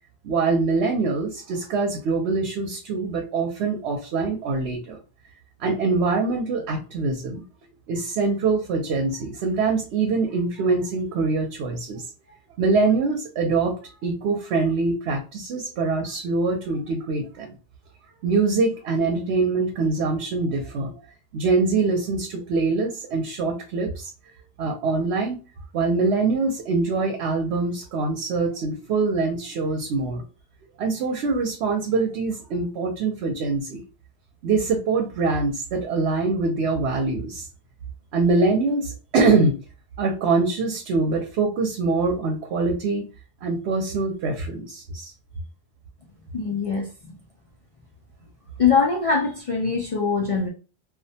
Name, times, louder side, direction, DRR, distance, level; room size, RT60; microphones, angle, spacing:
voice 1, 0.2-5.0 5.6-7.4 7.9-12.0 12.6-13.7 14.0-17.5 18.2-20.9 21.3-24.1 24.6-25.4 25.7-30.2 30.8-33.8 34.4-37.5 38.1-39.6 40.0-43.0 43.4-45.1, right 3 dB, 90° right, 2 dB, 0.9 m, -24 dB
voice 2, 46.3-47.2 48.6-50.5, left 5 dB, 60° left, 0 dB, 0.3 m, -22 dB
2.4 x 2.1 x 2.6 m, 0.34 s
omnidirectional pair, 1.1 m